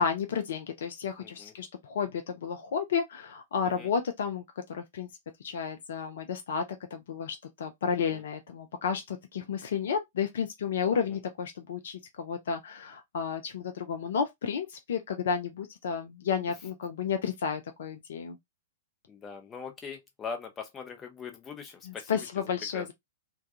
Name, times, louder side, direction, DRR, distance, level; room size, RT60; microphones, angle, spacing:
voice 1, 0.0-5.1 5.4-6.6 6.9-18.4 21.8-22.9, left 6 dB, 60° left, 0.4 m, -32 dB
voice 2, 1.2-1.5 3.8-3.9 8.1-8.2 10.9-11.2 19.1-22.3 22.7-22.9, left 5 dB, 20° left, 0.7 m, -41 dB
2.3 x 2.2 x 2.7 m
figure-of-eight pair, 105°, 0 cm